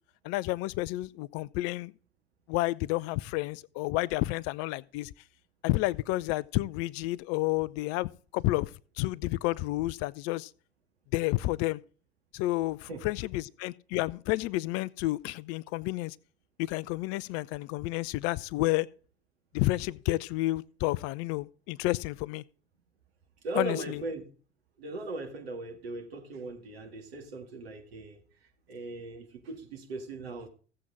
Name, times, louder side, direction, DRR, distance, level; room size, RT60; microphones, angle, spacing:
voice 1, 0.2-1.9 2.5-5.1 5.6-8.7 9.0-10.5 11.1-11.8 12.3-16.2 16.6-18.9 19.5-22.4 23.6-24.0, left 18 dB, 50° left, 0.5 m, -30 dB
voice 2, 23.4-24.2 24.8-28.2 28.7-30.5, right 2 dB, 70° right, 2.1 m, -38 dB
15.5 x 7.7 x 3.7 m
figure-of-eight pair, 65°, 31 cm